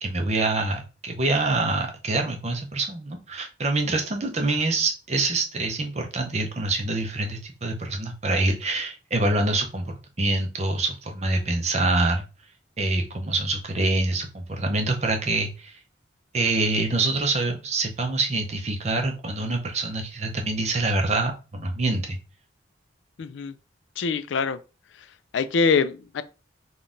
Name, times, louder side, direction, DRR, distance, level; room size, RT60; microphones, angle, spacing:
voice 1, 0.0-12.3 12.8-15.8 16.3-22.2, right 2 dB, 35° right, 0.6 m, -25 dB
voice 2, 23.2-23.5 24.0-24.6 24.9-25.1 25.3-26.2, left 5 dB, 80° left, 0.4 m, -24 dB
3.8 x 2.3 x 3.7 m
head